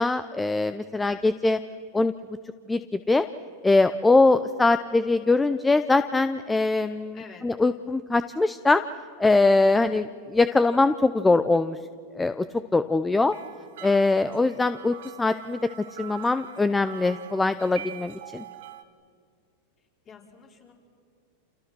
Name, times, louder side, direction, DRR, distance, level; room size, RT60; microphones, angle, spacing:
voice 1, 0.0-1.6 1.9-2.1 2.7-3.3 3.6-8.8 9.2-11.8 12.1-13.3 13.8-15.7 16.0-18.4, left 3 dB, 10° left, 12 dB, 0.6 m, -22 dB
voice 2, 7.1-7.4 20.1-20.7, left 6 dB, 35° left, 0 dB, 5.1 m, -47 dB
sound 1, 13.2-18.8, right 11 dB, 75° right, 1.9 m, -44 dB
29.5 x 28.0 x 6.2 m, 2.1 s
supercardioid pair, 130°, 0 cm